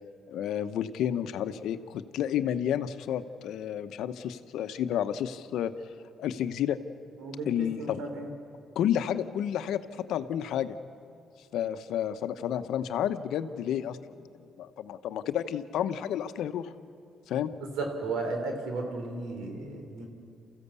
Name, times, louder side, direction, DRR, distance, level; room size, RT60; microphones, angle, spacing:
voice 1, 0.3-5.7 6.2-6.8 7.5-8.0 8.7-10.8 11.5-14.2 14.6-16.7 17.3-17.5, left 10 dB, 80° left, 11 dB, 0.9 m, -31 dB
voice 2, 7.2-8.3 17.6-20.1, right 3 dB, 90° right, 4 dB, 3.4 m, -34 dB
29.0 x 15.0 x 8.3 m, 2.5 s
cardioid pair, 90°, 0 cm